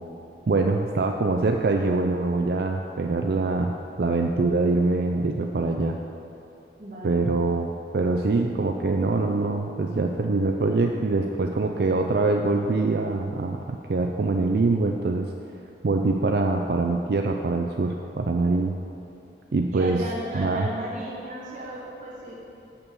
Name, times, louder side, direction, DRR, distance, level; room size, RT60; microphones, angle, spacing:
voice 1, 0.5-6.0 7.0-15.3 15.8-18.8 19.5-20.0 20.3-20.7, right 3 dB, 65° right, 3 dB, 0.4 m, -24 dB
voice 2, 6.8-7.3 19.7-22.3, right 1 dB, 45° right, -7 dB, 1.8 m, -34 dB
7.1 x 6.8 x 6.9 m, 2.8 s
head